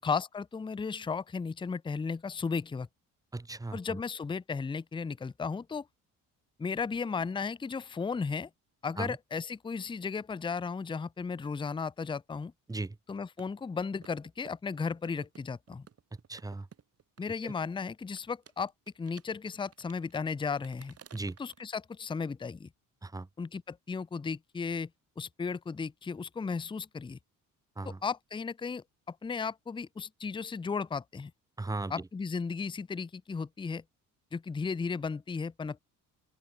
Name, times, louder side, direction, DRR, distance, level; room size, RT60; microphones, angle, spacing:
voice 1, 0.0-2.9 3.7-5.9 6.6-8.5 8.8-12.5 13.1-15.8 17.2-18.7 19.0-20.9 21.4-22.7 23.4-24.9 25.2-27.2 27.8-31.3 31.9-33.8 34.3-35.8, left 5 dB, 15° left, 0.6 m, -35 dB
voice 2, 3.3-4.0 9.0-9.2 12.7-13.0 16.3-16.7 17.4-17.5 21.1-21.4 23.0-23.3 27.8-28.0 31.6-31.9, right 2 dB, 10° right, 1.0 m, -37 dB
sound 1, 13.2-17.6 18.2-21.6, right 7 dB, 45° right, 5.3 m, -56 dB
open air
cardioid pair, 90°, 33 cm